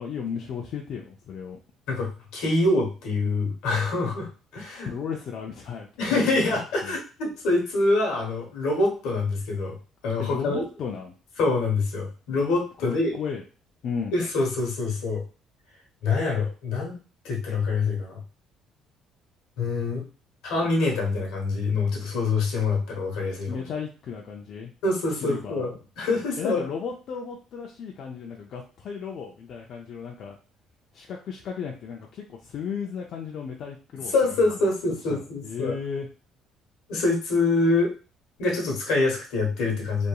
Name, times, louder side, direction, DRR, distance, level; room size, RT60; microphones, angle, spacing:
voice 1, 0.0-1.6 4.8-6.9 10.2-11.1 12.8-13.4 13.8-14.1 23.5-24.7 25.2-25.7 26.4-30.4 30.9-34.4 35.1-36.1, left 6 dB, 60° left, 0 dB, 0.4 m, -35 dB
voice 2, 1.9-4.9 6.0-9.8 10.0-10.6 11.4-13.2 14.1-15.2 16.0-17.0 17.2-18.2 19.6-20.1 20.4-23.6 24.8-26.6 34.1-35.7 36.9-37.9 38.4-40.1, left 3 dB, 80° left, 0 dB, 1.1 m, -25 dB
2.9 x 2.5 x 2.3 m, 0.35 s
cardioid pair, 95°, 0 cm